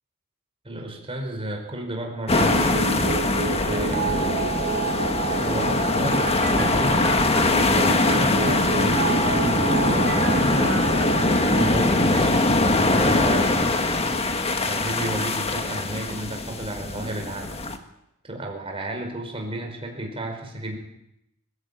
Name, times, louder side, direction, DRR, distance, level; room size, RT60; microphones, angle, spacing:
voice 1, 0.6-2.8 3.6-4.1 5.4-7.0 7.8-13.7 14.6-17.6 18.2-20.8, right 1 dB, 25° right, 2 dB, 5.0 m, -32 dB
sound 1, 2.3-17.8, left 2 dB, 30° left, 1.6 m, -22 dB
sound 2, 2.3-11.7, right 5 dB, 50° right, 0.9 m, -29 dB
sound 3, 4.0-8.8 9.1-9.8, equal, 90° left, 3.4 m, -44 dB
21.5 x 15.0 x 8.8 m, 0.83 s
head